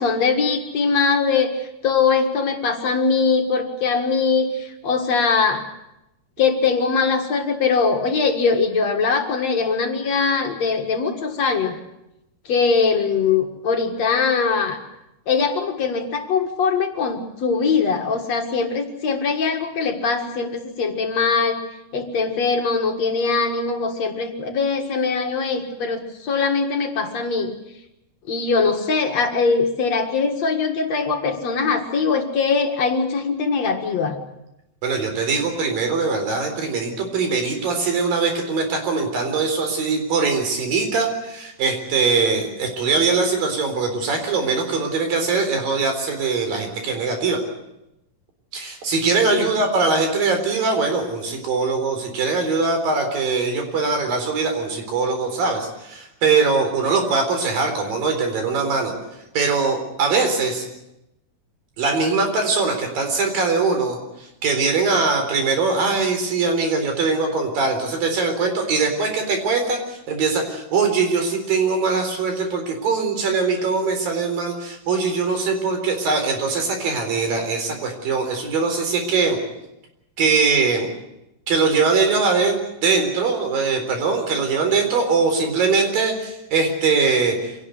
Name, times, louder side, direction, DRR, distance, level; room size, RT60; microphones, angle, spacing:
voice 1, 0.0-5.6 6.4-11.8 12.5-14.8 15.3-21.6 21.9-27.5 28.3-34.2 49.2-49.5, left 5 dB, 55° left, 4 dB, 2.8 m, -21 dB
voice 2, 34.8-47.4 48.5-58.9 59.3-60.7 61.8-79.4 80.2-80.9 81.5-87.6, right 4 dB, 85° right, 5 dB, 5.8 m, -21 dB
25.5 x 18.0 x 8.3 m, 0.89 s
omnidirectional pair, 3.9 m